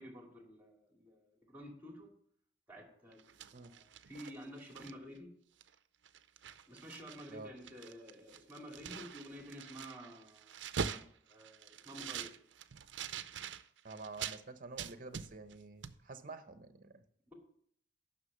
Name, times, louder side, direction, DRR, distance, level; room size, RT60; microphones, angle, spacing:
voice 1, 0.0-2.1 2.7-5.3 6.7-10.6 11.3-12.3, equal, 10° right, 1 dB, 2.3 m, -51 dB
sound 1, 3.1-5.2 5.6-5.8 6.0-7.3 7.6-14.4 14.8-15.6 15.8-16.0, right 7 dB, 85° right, 0.5 m, -44 dB
voice 2, 13.8-17.0, right 3 dB, 45° right, 10 dB, 0.9 m, -49 dB
9.7 x 6.0 x 6.5 m, 0.65 s
head